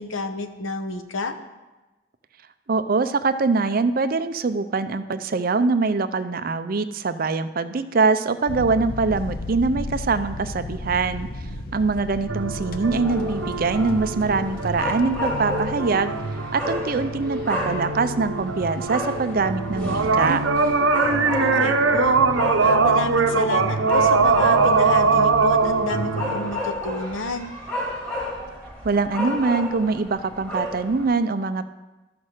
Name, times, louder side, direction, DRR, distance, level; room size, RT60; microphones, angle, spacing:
voice 1, 0.0-1.3 21.1-22.2 22.6-27.5, left 2 dB, 80° left, 7 dB, 0.9 m, -30 dB
voice 2, 2.7-11.3 11.7-16.1 16.5-20.4 28.8-31.7, right 4 dB, 45° right, 11 dB, 0.5 m, -23 dB
sound 1, 8.5-16.0, left 2 dB, 50° left, 0.7 m, -35 dB
sound 2, 12.3-26.5, right 4 dB, 75° right, 0.8 m, -22 dB
sound 3, 13.0-31.1, left 1 dB, 10° left, 2.0 m, -32 dB
13.0 x 5.9 x 6.5 m, 1.1 s
head